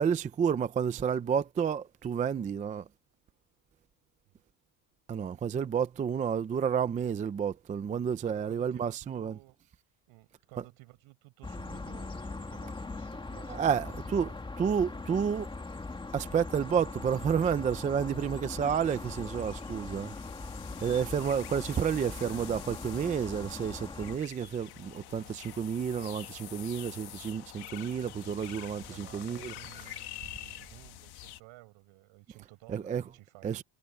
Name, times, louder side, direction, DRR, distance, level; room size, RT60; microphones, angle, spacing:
voice 1, 0.0-2.9 5.1-9.3 13.5-14.3 14.6-15.5 16.1-20.1 20.8-29.5 32.7-33.0 33.4-33.6, right 7 dB, 15° right, 0.4 m, -30 dB
voice 2, 8.2-9.6 10.1-14.4 28.9-33.6, right 21 dB, 65° right, 5.1 m, -55 dB
sound 1, 11.4-24.2, left 3 dB, 10° left, 2.2 m, -41 dB
sound 2, 18.8-31.4, left 15 dB, 50° left, 1.3 m, -47 dB
cardioid pair, 155°, 50 cm